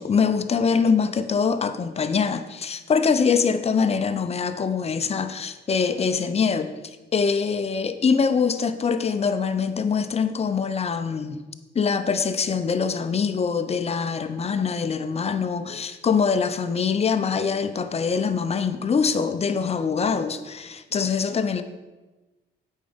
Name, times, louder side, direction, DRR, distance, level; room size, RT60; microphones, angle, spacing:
voice 1, 0.0-6.7 7.1-11.4 11.7-21.6, left 5 dB, 30° left, 9 dB, 0.7 m, -23 dB
8.5 x 5.4 x 5.2 m, 1.2 s
cardioid pair, 90°, 20 cm